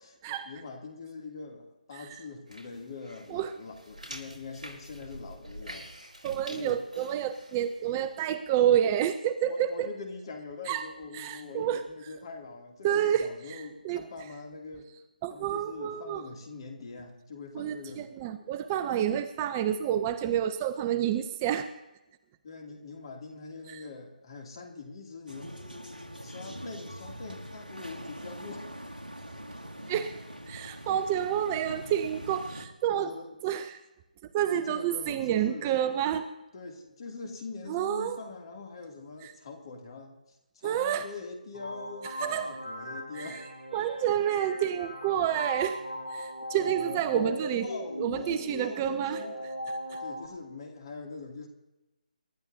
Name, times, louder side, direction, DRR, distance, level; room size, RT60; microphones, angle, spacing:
voice 1, 0.3-5.9 6.5-6.8 9.5-14.9 15.3-18.1 22.4-25.5 26.2-28.7 32.9-33.4 34.5-35.9 36.5-43.5 46.5-49.4 50.0-51.5, left 4 dB, 35° left, 2 dB, 2.5 m, -43 dB
sound 1, 2.5-8.2, right 1 dB, 65° right, 4.8 m, -47 dB
voice 2, 6.2-9.9 10.7-10.8 11.1-11.8 12.8-14.0 15.2-16.2 17.5-21.7 23.7-23.8 29.9-30.2 30.5-33.2 33.4-33.8 34.3-36.2 37.7-38.2 39.2-39.3 40.6-41.1 42.2-42.5 43.1-43.4 43.7-45.8 46.1-47.7 48.0-49.2 49.9-50.0, right 10 dB, 20° right, 12 dB, 0.5 m, -29 dB
sound 2, 25.3-32.7, equal, 80° right, 2.0 m, -43 dB
sound 3, 41.5-50.3, equal, 70° left, 5.6 m, -38 dB
28.0 x 12.0 x 2.7 m, 0.98 s
figure-of-eight pair, 150°, 5 cm